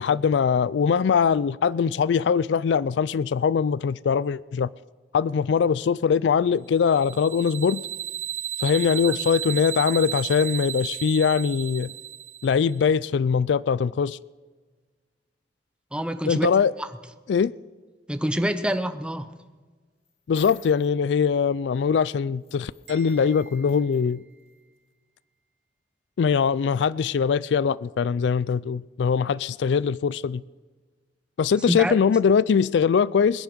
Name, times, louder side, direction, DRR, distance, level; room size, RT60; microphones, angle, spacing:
voice 1, 0.0-4.7 5.1-7.8 8.6-11.9 12.4-14.2 16.3-16.7 17.3-17.5 20.3-24.2 26.2-30.4 31.4-33.4, left 6 dB, 80° left, 0.4 m, -22 dB
sound 1, 6.8-12.7, right 12 dB, 45° right, 0.5 m, -33 dB
voice 2, 15.9-16.5 16.8-16.9 18.1-19.3 31.7-31.9, equal, 5° right, 0.7 m, -26 dB
sound 2, 20.1-20.9 22.4-24.1 24.5-24.6, left 4 dB, 35° left, 2.4 m, -48 dB
sound 3, 22.9-24.9, right 6 dB, 75° right, 3.1 m, -51 dB
21.0 x 10.0 x 6.1 m
head